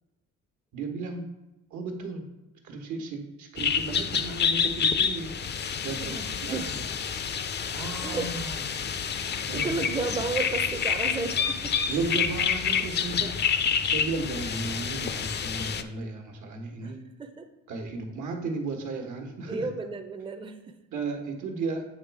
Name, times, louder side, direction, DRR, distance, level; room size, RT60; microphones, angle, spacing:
voice 1, 0.7-1.2 1.7-2.2 2.6-6.9 7.7-8.6 9.5-9.8 11.9-13.3 13.8-17.0 17.7-19.7 20.9-21.9, right 3 dB, 75° right, 3 dB, 1.3 m, -34 dB
sound 1, 3.6-15.8, left 7 dB, 35° left, 0.4 m, -28 dB
voice 2, 6.0-6.8 8.0-8.3 9.2-11.7 16.8-17.5 19.5-20.7, right 3 dB, 15° right, 5 dB, 0.5 m, -33 dB
8.2 x 3.1 x 4.7 m, 1.0 s
cardioid pair, 90°, 30 cm